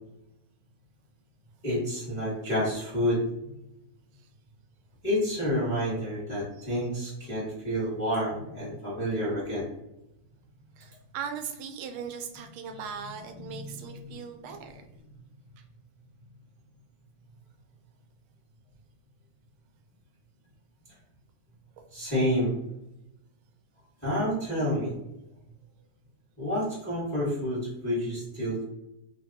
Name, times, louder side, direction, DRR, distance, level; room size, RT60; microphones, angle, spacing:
voice 1, 1.6-3.2 5.0-9.7 13.3-13.4 21.9-22.5 24.0-25.0 26.4-28.6, equal, 5° left, -8 dB, 1.0 m, -29 dB
voice 2, 10.8-14.8 15.6-15.7, right 7 dB, 85° right, 5 dB, 1.4 m, -39 dB
3.4 x 2.5 x 2.6 m, 0.89 s
omnidirectional pair, 2.3 m